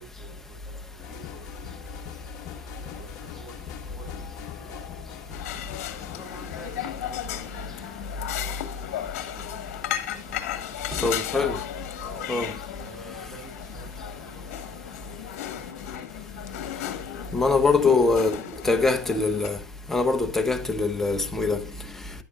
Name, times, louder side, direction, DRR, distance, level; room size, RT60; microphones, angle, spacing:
voice 1, 0.0-4.9 5.1-11.5 11.9-19.0 19.5-19.6 21.3-22.2, equal, 15° right, 4.8 m, -49 dB
sound 1, 1.0-6.8, left 10 dB, 35° left, 1.1 m, -42 dB
sound 2, 5.3-19.5, left 12 dB, 50° left, 1.3 m, -35 dB
voice 2, 10.9-11.6 12.3-12.5 17.3-19.6 19.9-21.6, left 3 dB, 5° left, 0.7 m, -23 dB
10.5 x 8.2 x 2.4 m
supercardioid pair, 155°, 9 cm